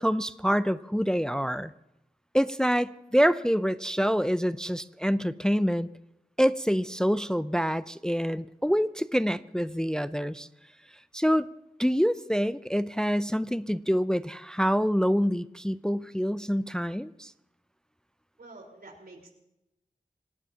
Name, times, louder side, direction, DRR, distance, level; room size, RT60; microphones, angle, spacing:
voice 1, 0.0-1.7 2.3-5.9 6.4-10.5 11.1-11.5 11.8-17.3, equal, 5° left, 13 dB, 0.5 m, -26 dB
voice 2, 18.4-19.3, right 2 dB, 80° right, 1 dB, 4.3 m, -48 dB
26.0 x 18.5 x 2.9 m, 0.89 s
wide cardioid pair, 70°, 15 cm